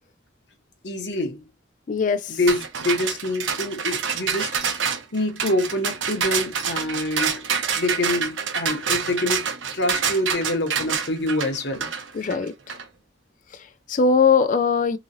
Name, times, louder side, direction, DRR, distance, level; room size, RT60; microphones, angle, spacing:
voice 1, 0.8-1.4 2.3-7.4 7.8-11.9, left 1 dB, 65° left, 1.0 m, -26 dB
voice 2, 1.9-2.4 12.1-12.8 13.5-15.0, left 5 dB, 40° left, 0.4 m, -21 dB
sound 1, 2.5-12.8, right 6 dB, 85° right, 0.8 m, -27 dB
3.7 x 3.0 x 2.6 m
head